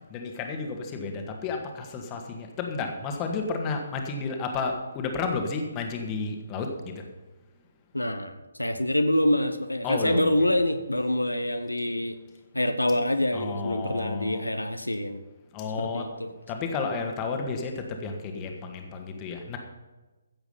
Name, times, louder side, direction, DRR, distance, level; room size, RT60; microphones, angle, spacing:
voice 1, 0.1-7.0 9.8-10.3 13.3-14.4 15.5-16.1 16.5-19.6, left 4 dB, 20° left, 3 dB, 1.8 m, -32 dB
voice 2, 7.9-12.2 12.5-15.2 15.8-16.3, left 1 dB, 80° left, 8 dB, 1.1 m, -26 dB
15.0 x 7.9 x 5.6 m, 1.2 s
figure-of-eight pair, 140°, 0 cm